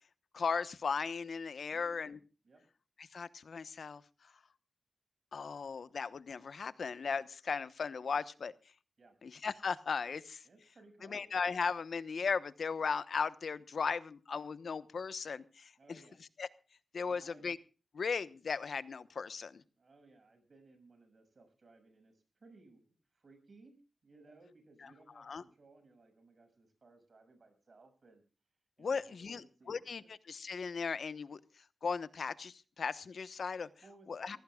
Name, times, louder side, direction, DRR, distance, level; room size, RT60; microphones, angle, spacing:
voice 1, 0.3-2.2 3.0-4.0 5.3-8.5 9.2-10.4 11.1-16.0 16.4-16.5 16.9-17.6 17.9-19.6 25.2-25.4 28.8-29.4 29.7-30.0 30.3-31.4 31.8-33.7 34.1-34.4, left 5 dB, 80° left, 14 dB, 1.0 m, -37 dB
voice 2, 1.7-2.2 2.4-2.6 9.0-9.2 10.4-11.3 15.8-16.2 17.1-17.5 19.8-23.8 24.0-28.2 28.8-30.1 33.8-34.4, right 3 dB, 55° right, 9 dB, 6.7 m, -61 dB
25.0 x 17.0 x 2.3 m, 0.34 s
wide cardioid pair, 100°, 0 cm